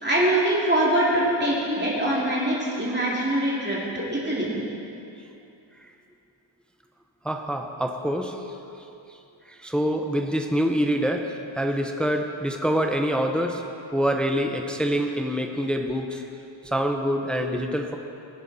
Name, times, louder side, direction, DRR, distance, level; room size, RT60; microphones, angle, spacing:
voice 1, 0.0-4.6, right 1 dB, 20° right, -6 dB, 2.7 m, -23 dB
voice 2, 7.2-8.4 9.5-13.6 13.9-16.2 16.6-18.0, equal, ahead, 3 dB, 0.9 m, -25 dB
18.0 x 9.9 x 4.3 m, 2.7 s
wide cardioid pair, 45°, 49 cm